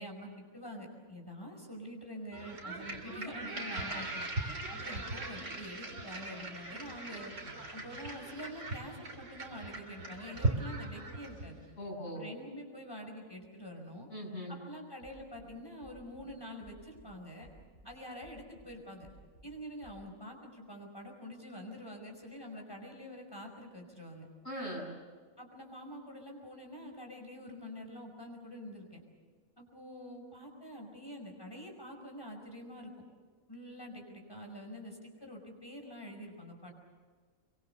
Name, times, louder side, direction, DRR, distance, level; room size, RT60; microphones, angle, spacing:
voice 1, 0.0-7.3 7.7-11.6 12.1-14.1 14.5-17.5 17.8-19.1 19.4-24.3 25.4-29.0 29.6-32.9 33.5-36.7, equal, 15° left, 2 dB, 5.4 m, -46 dB
sound 1, 2.3-11.6, right 2 dB, 60° right, 3.3 m, -39 dB
voice 2, 11.8-12.3 14.1-14.6 24.4-24.9, equal, 50° left, -1 dB, 7.2 m, -40 dB
sound 2, 15.0-15.5 15.8-16.3 16.6-17.1 17.4-17.9 18.2-18.7 19.0-19.5 19.8-19.9, equal, 75° left, 8.6 m, -57 dB
25.5 x 24.0 x 6.9 m, 1.5 s
omnidirectional pair, 1.5 m